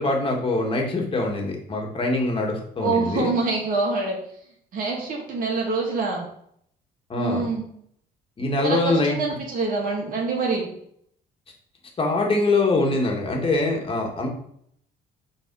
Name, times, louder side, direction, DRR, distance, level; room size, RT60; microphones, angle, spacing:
voice 1, 0.0-3.3 7.1-7.5 8.4-9.2 12.0-14.3, left 2 dB, 30° left, 1 dB, 1.8 m, -23 dB
voice 2, 2.8-4.2 4.7-6.2 7.2-7.7 8.6-10.7, right 3 dB, 55° right, -1 dB, 2.3 m, -25 dB
6.4 x 4.1 x 4.7 m, 0.68 s
cardioid pair, 110°, 17 cm